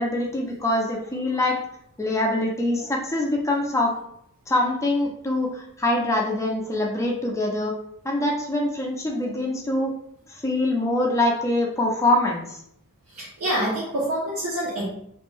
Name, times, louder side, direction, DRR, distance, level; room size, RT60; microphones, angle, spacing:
voice 1, 0.0-1.6 2.0-3.9 4.5-7.7 8.0-9.9 10.3-12.6, left 1 dB, 15° left, 0 dB, 0.4 m, -24 dB
voice 2, 13.1-14.9, right 1 dB, 70° right, -7 dB, 0.7 m, -26 dB
2.5 x 2.1 x 3.1 m, 0.73 s
head